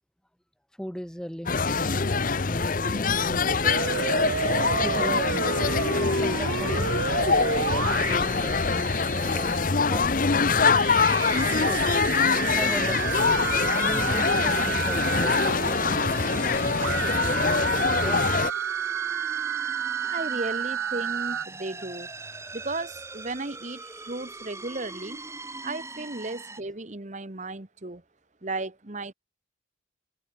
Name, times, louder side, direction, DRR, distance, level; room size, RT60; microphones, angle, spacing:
voice 1, 0.8-2.1 2.5-3.9 4.8-6.9 7.8-10.3 11.6-11.8 12.3-13.1 13.8-18.3 21.7-21.9 23.9-24.1, equal, 5° left, 1.0 m, -38 dB
sound 1, 1.5-18.5, left 4 dB, 45° left, 0.8 m, -24 dB
sound 2, 3.6-9.6 10.7-21.4, right 9 dB, 75° right, 0.4 m, -31 dB
sound 3, 11.1-26.6, right 3 dB, 15° right, 2.7 m, -41 dB
voice 2, 20.0-22.1 22.5-25.2 25.6-28.0 28.4-29.1, right 2 dB, 35° right, 1.3 m, -35 dB
head